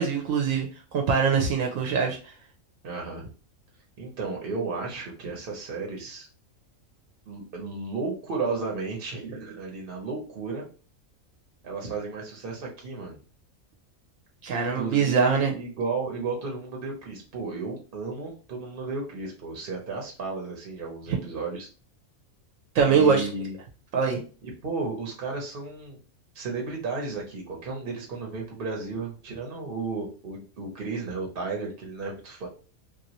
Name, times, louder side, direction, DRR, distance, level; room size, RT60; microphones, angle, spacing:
voice 1, 0.0-2.2 14.4-15.5 22.7-23.3 23.9-24.2, right 6 dB, 75° right, 2 dB, 1.0 m, -23 dB
voice 2, 2.8-3.3 4.0-6.3 7.3-10.7 11.6-13.2 14.7-21.7 22.9-23.6 24.4-26.0 26.3-32.5, right 4 dB, 50° right, 0 dB, 0.9 m, -33 dB
3.0 x 2.5 x 2.8 m, 0.36 s
omnidirectional pair, 1.4 m